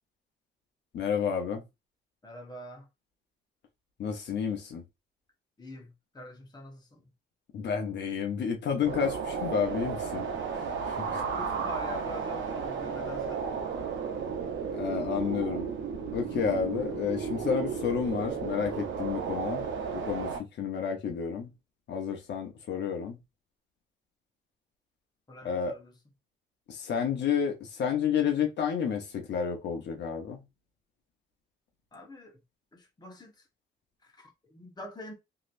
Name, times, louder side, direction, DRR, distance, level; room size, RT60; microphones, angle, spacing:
voice 1, 0.9-1.6 4.0-4.8 7.5-11.2 14.7-15.7 16.1-21.5 21.9-23.2 25.4-25.7 26.7-30.4, left 7 dB, 65° left, 0.8 m, -31 dB
voice 2, 2.2-2.9 5.6-7.1 11.3-13.5 25.3-25.9 31.9-32.4 32.7-33.5 34.0-35.1, left 1 dB, 20° left, 1.2 m, -45 dB
sound 1, 8.8-20.4, right 6 dB, 75° right, 0.8 m, -33 dB
3.1 x 2.8 x 2.6 m
cardioid pair, 90°, 20 cm